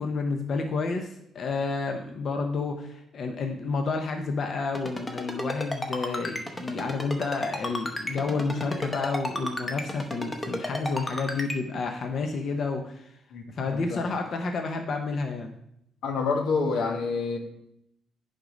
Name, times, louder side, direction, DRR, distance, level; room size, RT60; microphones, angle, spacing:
voice 1, 0.0-13.1 13.5-15.5, left 4 dB, 45° left, 4 dB, 0.7 m, -30 dB
Ringtone, 4.7-11.6, left 1 dB, 15° left, 0.8 m, -32 dB
voice 2, 13.3-14.0 16.0-17.4, left 4 dB, 90° left, 3 dB, 1.4 m, -28 dB
10.5 x 3.9 x 5.1 m, 0.77 s
cardioid pair, 155°, 0 cm